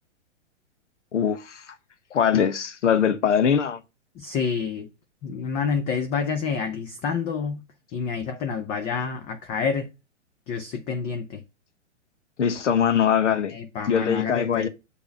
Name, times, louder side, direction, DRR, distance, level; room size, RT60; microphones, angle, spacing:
voice 1, 1.1-1.8 2.1-3.8 12.4-13.6 13.9-14.7, left 8 dB, 75° left, 1.0 m, -22 dB
voice 2, 4.2-4.9 5.2-7.6 7.9-9.9 10.5-11.4 13.5-14.7, left 6 dB, 20° left, 0.4 m, -28 dB
6.7 x 3.4 x 5.2 m
hypercardioid pair, 120°, 36 cm